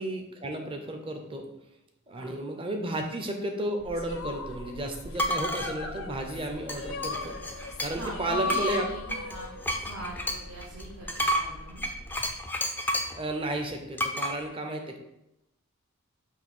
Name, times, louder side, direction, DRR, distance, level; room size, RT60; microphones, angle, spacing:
voice 1, 0.0-1.5 2.1-7.4 7.8-8.9 12.2-12.3 13.1-15.0, right 1 dB, 25° right, 4 dB, 0.7 m, -33 dB
sound 1, 3.8-12.4, equal, 45° right, 1.0 m, -46 dB
sound 2, 3.9-9.9, left 4 dB, 65° left, 0.6 m, -37 dB
sound 3, 5.1-5.7 6.7-8.1 8.5-13.2 14.0-14.3, equal, 10° left, 0.4 m, -31 dB
voice 2, 7.9-9.5 9.8-11.8, right 1 dB, 75° right, -9 dB, 1.9 m, -41 dB
6.6 x 2.8 x 5.4 m, 0.88 s
head